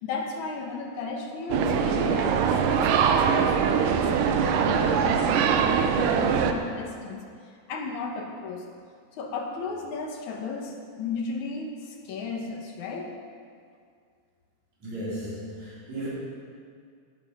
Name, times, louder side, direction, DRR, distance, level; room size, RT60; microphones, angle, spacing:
voice 1, 0.0-7.2 7.7-8.7 9.1-13.1, left 4 dB, 70° left, 2 dB, 2.4 m, -35 dB
sound 1, 1.5-6.5, right 7 dB, 80° right, 2.3 m, -22 dB
voice 2, 14.8-16.1, right 1 dB, 55° right, -9 dB, 5.7 m, -35 dB
12.5 x 11.5 x 5.4 m, 2.2 s
omnidirectional pair, 3.8 m